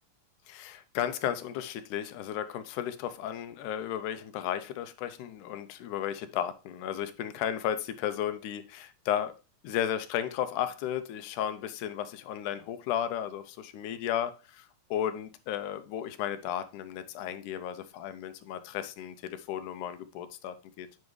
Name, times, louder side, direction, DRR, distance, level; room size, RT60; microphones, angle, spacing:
voice 1, 0.5-9.4 9.6-20.9, left 10 dB, 85° left, 2.1 m, -34 dB
9.1 x 5.3 x 3.1 m
omnidirectional pair, 3.5 m